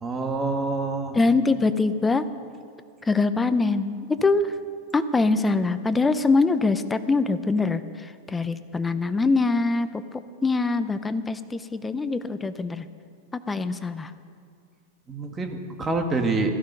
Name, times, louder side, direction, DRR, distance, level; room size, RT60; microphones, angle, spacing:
voice 1, 0.0-1.2 15.1-16.6, right 3 dB, 15° right, 4 dB, 1.3 m, -26 dB
voice 2, 1.1-2.3 3.1-4.5 4.9-10.0 10.4-12.9 13.3-14.1, left 3 dB, 10° left, 12 dB, 0.5 m, -23 dB
16.5 x 14.5 x 5.4 m, 2.2 s
supercardioid pair, 165°, 0 cm